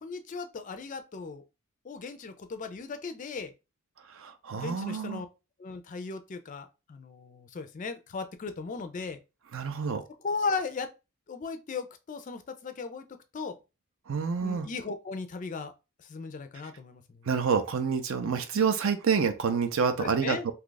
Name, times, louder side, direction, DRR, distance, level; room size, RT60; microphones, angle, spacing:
voice 1, 0.0-1.4 1.8-3.5 4.5-5.3 5.6-9.2 10.2-10.9 11.3-13.1 13.3-13.6 14.4-15.7 16.0-17.3 18.2-18.3 20.0-20.5, left 4 dB, 35° left, 0.3 m, -36 dB
voice 2, 4.1-5.2 9.5-10.0 14.1-14.7 17.3-20.5, right 6 dB, 60° right, 0.5 m, -28 dB
2.8 x 2.3 x 3.8 m
head